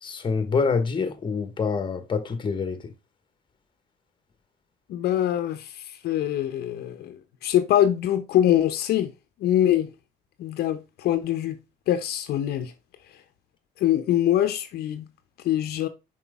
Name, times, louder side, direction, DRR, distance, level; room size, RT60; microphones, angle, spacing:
voice 1, 0.0-2.9, left 5 dB, 30° left, 1.2 m, -26 dB
voice 2, 4.9-9.1 9.4-9.9 10.4-11.6 11.9-12.7 13.8-15.1 15.4-15.9, left 11 dB, 70° left, 0.8 m, -24 dB
5.9 x 4.6 x 3.5 m
cardioid pair, 110°, 17 cm